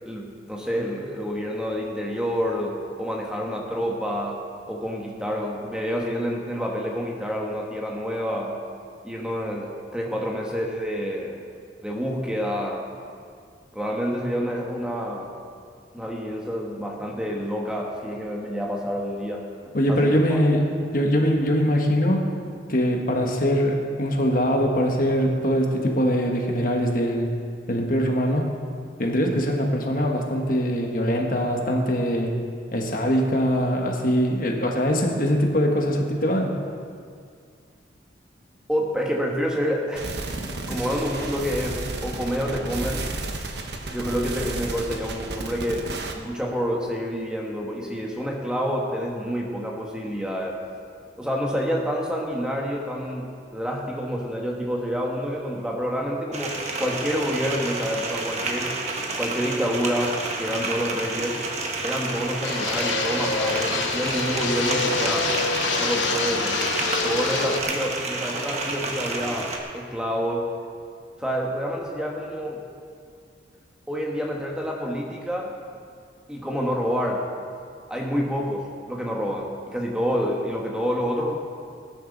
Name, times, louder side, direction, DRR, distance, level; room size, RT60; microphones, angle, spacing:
voice 1, 0.0-8.6 9.0-11.4 11.8-12.9 13.7-15.3 15.9-20.4 38.7-40.1 40.7-43.1 43.9-45.9 46.2-50.5 51.2-58.8 59.1-61.4 61.8-65.3 65.8-66.6 67.0-70.5 71.2-72.6 73.9-75.5 76.3-77.3 77.9-81.4, equal, 5° right, -1 dB, 1.2 m, -28 dB
voice 2, 19.7-20.6 20.9-22.3 22.7-27.3 27.7-28.5 29.0-32.3 32.7-36.5 40.6-40.8, equal, 45° left, 1 dB, 1.5 m, -22 dB
sound 1, 40.0-46.1, right 2 dB, 65° right, 1.1 m, -32 dB
sound 2, 56.3-69.6, right 3 dB, 35° right, 1.4 m, -30 dB
Fixed-wing aircraft airplane, 62.4-67.6, left 4 dB, 85° left, 1.1 m, -26 dB
19.5 x 10.5 x 4.0 m, 2.2 s
head